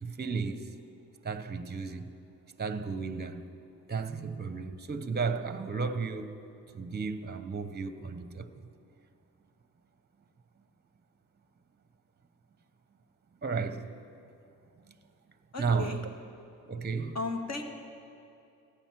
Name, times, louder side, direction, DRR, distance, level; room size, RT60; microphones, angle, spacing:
voice 1, 0.0-0.7 1.2-2.1 2.6-3.5 3.9-6.4 6.7-8.5 13.4-14.0 14.8-15.0 15.6-16.0 16.7-17.2, right 5 dB, 25° right, 0.9 m, -33 dB
voice 2, 15.5-16.0 17.1-17.6, left 3 dB, 40° left, 1.7 m, -35 dB
14.5 x 9.0 x 6.0 m
supercardioid pair, 55°, 41 cm